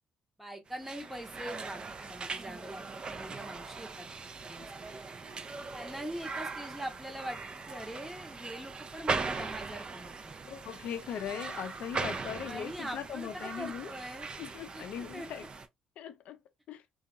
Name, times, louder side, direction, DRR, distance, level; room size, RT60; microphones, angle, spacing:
voice 1, 0.4-4.7 5.7-7.4 7.7-10.3 12.4-14.3 14.7-14.8 15.1-15.5, equal, 5° right, 0.8 m, -43 dB
sound 1, 0.7-15.7, right 4 dB, 40° right, 0.4 m, -40 dB
voice 2, 10.4-13.9 14.4-15.5 16.0-16.4 16.7-16.8, left 9 dB, 70° left, 0.4 m, -39 dB
2.7 x 2.3 x 2.3 m
hypercardioid pair, 50°, 2 cm